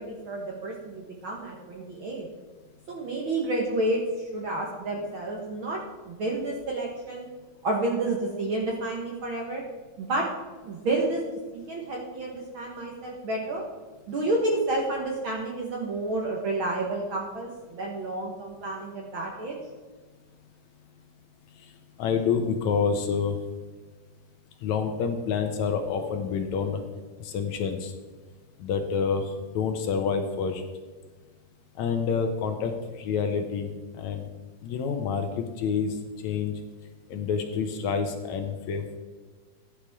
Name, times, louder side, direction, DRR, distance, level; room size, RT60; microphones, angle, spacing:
voice 1, 0.1-2.3 2.9-5.8 6.0-7.3 7.6-9.6 10.0-10.3 10.6-11.2 11.5-13.6 14.1-19.6, right 2 dB, 55° right, -1 dB, 1.5 m, -30 dB
voice 2, 22.0-23.4 24.6-26.8 27.2-27.9 28.6-30.6 31.8-34.3 34.6-36.0 36.2-36.6 37.1-39.0, left 6 dB, 70° left, 6 dB, 2.0 m, -28 dB
15.0 x 9.8 x 3.6 m, 1.4 s
omnidirectional pair, 3.7 m